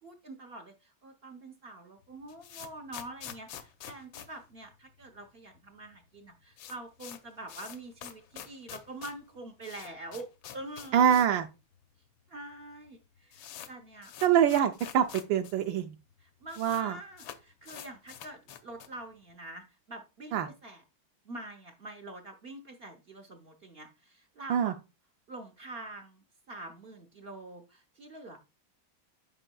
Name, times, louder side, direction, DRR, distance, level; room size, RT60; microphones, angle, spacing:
voice 1, 0.0-11.2 12.3-14.1 16.2-20.8 21.2-24.8 25.3-28.4, right 2 dB, 60° right, 4 dB, 0.6 m, -45 dB
sound 1, 2.0-5.3 5.5-5.6 5.9-6.0 6.3-11.4 11.7-11.8 12.5-12.6 12.9-15.5 15.8-15.9 16.1-16.8 17.2-19.0, left 10 dB, 80° left, 1.5 m, -47 dB
voice 2, 10.9-11.5 14.2-15.9 16.6-17.0 20.3-20.5 24.5-24.7, right 9 dB, 80° right, 6 dB, 1.2 m, -25 dB
8.8 x 5.4 x 2.2 m, 0.28 s
omnidirectional pair, 2.1 m